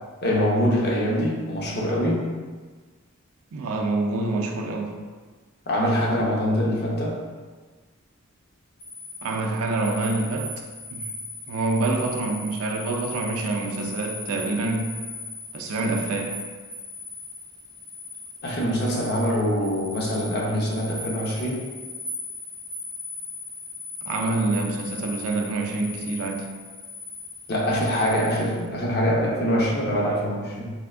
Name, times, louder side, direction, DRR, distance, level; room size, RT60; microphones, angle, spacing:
voice 1, 0.2-2.3 5.7-7.2 18.4-21.7 27.5-30.7, equal, 45° left, -3 dB, 0.6 m, -24 dB
voice 2, 3.5-5.0 9.2-10.6 10.9-11.1 11.5-14.9 15.5-16.4 24.0-26.5, right 2 dB, 80° right, 2 dB, 0.4 m, -26 dB
sound 1, 8.8-28.6, left 3 dB, 65° left, 1.1 m, -38 dB
3.4 x 2.5 x 2.3 m, 1.4 s
head